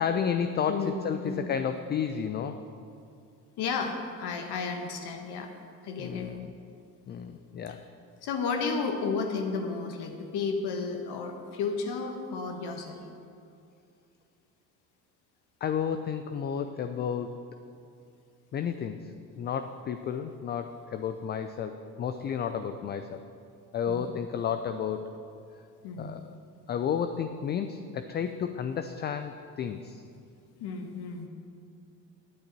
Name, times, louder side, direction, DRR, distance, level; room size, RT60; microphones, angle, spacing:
voice 1, 0.0-2.6 6.0-6.5 7.1-7.9 15.6-17.4 18.5-23.2 23.7-25.1 26.0-26.3 26.7-30.0, left 7 dB, 25° left, 8 dB, 0.4 m, -32 dB
voice 2, 0.7-1.0 1.2-1.5 3.6-5.5 5.8-6.3 8.2-13.0 23.9-24.0 25.8-26.1 30.6-31.3, left 4 dB, 50° left, 4 dB, 1.3 m, -32 dB
17.0 x 9.2 x 3.0 m, 2.4 s
figure-of-eight pair, 60°, 50 cm